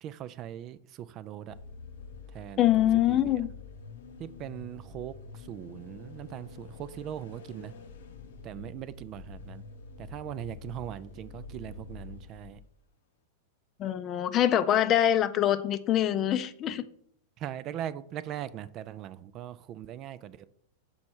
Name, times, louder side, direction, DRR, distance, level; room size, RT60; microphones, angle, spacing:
voice 1, 0.0-1.6 2.3-2.7 3.1-3.2 4.2-7.7 8.4-9.6 10.0-12.6 17.4-20.5, right 11 dB, 40° right, 0.3 m, -40 dB
sound 1, 1.5-12.7, left 4 dB, 80° left, 0.7 m, -47 dB
voice 2, 2.6-3.5 13.8-16.8, left 11 dB, 35° left, 0.5 m, -24 dB
6.3 x 4.2 x 4.5 m
hypercardioid pair, 105°, 0 cm